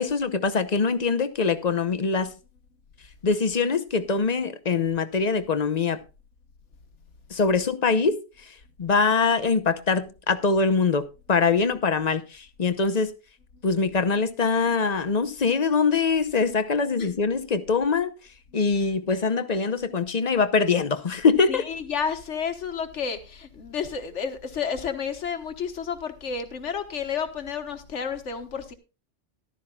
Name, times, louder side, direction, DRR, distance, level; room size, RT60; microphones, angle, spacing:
voice 1, 0.0-2.3 3.2-6.0 7.3-13.1 13.6-18.1 18.5-21.6, left 4 dB, 40° left, 0.9 m, -23 dB
voice 2, 21.5-28.7, left 6 dB, 75° left, 1.6 m, -31 dB
14.5 x 12.0 x 2.3 m
omnidirectional pair, 1.2 m